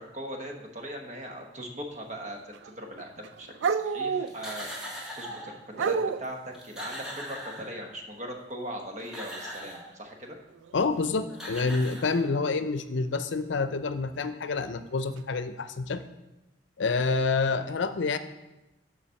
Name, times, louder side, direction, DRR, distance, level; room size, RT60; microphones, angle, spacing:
voice 1, 0.0-6.4 6.6-10.3, equal, 40° right, 3 dB, 1.2 m, -40 dB
sound 1, 2.3-2.7 3.0-4.7 5.7-6.3 10.5-10.8 12.0-12.1 14.2-14.3 15.2-15.4, right 5 dB, 80° right, 0.3 m, -30 dB
Snake Tongue Hiss, 4.3-5.6 6.2-6.3 6.5-8.1 8.8-9.9 11.0-11.1 11.3-12.6, equal, 5° right, 1.5 m, -40 dB
voice 2, 10.7-16.0 16.8-18.2, left 4 dB, 80° left, 11 dB, 0.5 m, -28 dB
7.1 x 5.1 x 6.4 m, 0.96 s
head